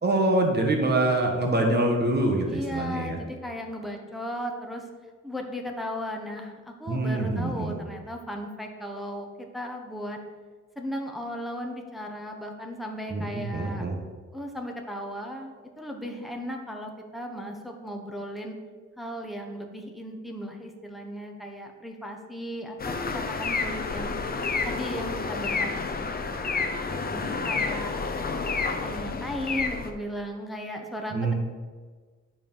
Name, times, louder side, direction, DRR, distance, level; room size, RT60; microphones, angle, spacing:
voice 1, 0.0-3.2 6.9-7.7 13.1-13.9 31.1-31.3, right 2 dB, 35° right, 1 dB, 1.5 m, -25 dB
voice 2, 2.5-4.9 5.2-10.2 10.7-13.9 14.3-18.6 19.0-24.1 24.6-27.9 28.8-31.3, equal, ahead, 1 dB, 1.1 m, -36 dB
sound 1, 22.8-29.9, left 4 dB, 30° left, 0.8 m, -29 dB
11.0 x 5.0 x 5.6 m, 1.5 s
wide cardioid pair, 130°, 29 cm